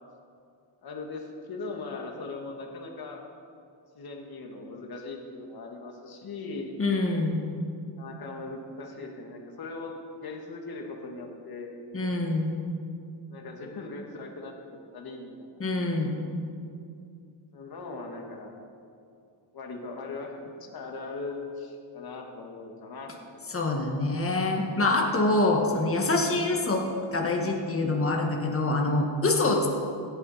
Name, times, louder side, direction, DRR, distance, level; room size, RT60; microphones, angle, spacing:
voice 1, 0.8-3.2 3.9-6.7 8.0-9.9 10.2-11.8 13.3-14.5 14.9-15.5 17.5-18.5 19.5-20.4 20.7-24.2, left 3 dB, 50° left, 1 dB, 1.7 m, -39 dB
voice 2, 6.8-7.4 11.9-12.6 15.6-16.1 23.5-26.8 27.1-29.7, left 2 dB, 25° left, 1 dB, 1.8 m, -25 dB
16.5 x 9.1 x 4.2 m, 2.4 s
cardioid pair, 110°, 49 cm